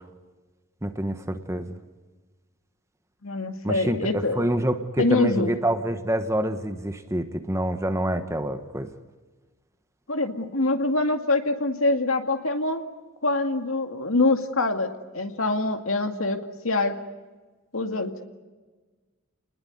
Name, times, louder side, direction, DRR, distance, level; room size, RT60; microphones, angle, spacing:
voice 1, 0.8-1.7 3.6-8.9, right 1 dB, 15° right, 7 dB, 1.3 m, -27 dB
voice 2, 3.2-4.4 5.0-5.5 10.1-12.8 13.2-17.0 17.7-18.1, left 2 dB, 70° left, 6 dB, 2.2 m, -25 dB
29.5 x 20.5 x 9.4 m, 1.3 s
head